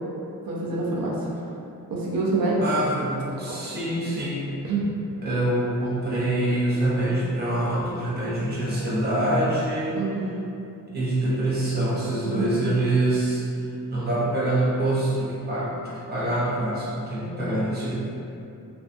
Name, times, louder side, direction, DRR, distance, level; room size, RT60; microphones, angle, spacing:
voice 1, 0.4-1.2 1.9-2.6 4.6-4.9 9.9-10.3 12.2-12.5, right 3 dB, 80° right, -4 dB, 0.5 m, -26 dB
voice 2, 2.6-4.4 5.2-10.0 10.9-13.4 13.9-17.9, right 1 dB, 30° right, -8 dB, 0.5 m, -25 dB
2.4 x 2.3 x 2.5 m, 2.7 s
wide cardioid pair, 180°, 35 cm